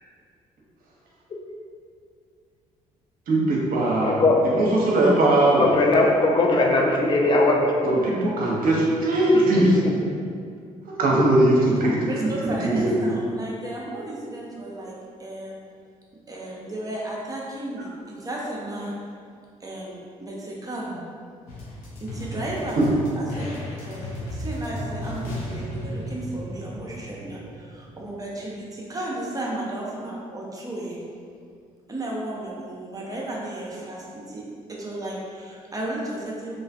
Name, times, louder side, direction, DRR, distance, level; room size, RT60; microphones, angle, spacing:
voice 1, 3.3-4.2 4.4-5.7 7.8-9.8 11.0-12.1 12.4-12.9 18.9-19.0, right 1 dB, 55° right, -4 dB, 0.7 m, -20 dB
voice 2, 4.0-4.4 5.6-8.0, left 2 dB, 25° left, 0 dB, 0.5 m, -19 dB
voice 3, 12.1-14.9 15.2-15.6 16.3-18.9 19.6-21.0 22.0-23.5 23.8-31.0 31.9-34.4 34.7-36.6, right 1 dB, 20° right, -4 dB, 0.7 m, -34 dB
sound 1, 21.5-28.0, left 1 dB, 80° left, 0.6 m, -35 dB
2.5 x 2.4 x 2.4 m, 2.2 s
hypercardioid pair, 50°, 18 cm